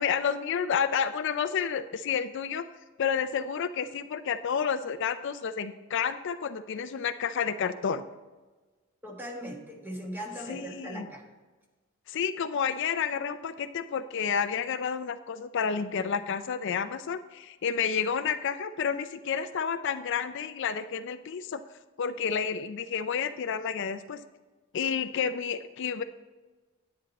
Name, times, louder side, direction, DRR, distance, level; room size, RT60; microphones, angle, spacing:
voice 1, 0.0-2.6 3.0-8.0 10.5-11.1 12.1-21.6 22.0-24.2 24.7-26.0, left 7 dB, 60° left, 11 dB, 0.4 m, -30 dB
voice 2, 9.0-11.2, equal, 10° right, 1 dB, 1.4 m, -39 dB
10.0 x 8.6 x 4.1 m, 1.3 s
head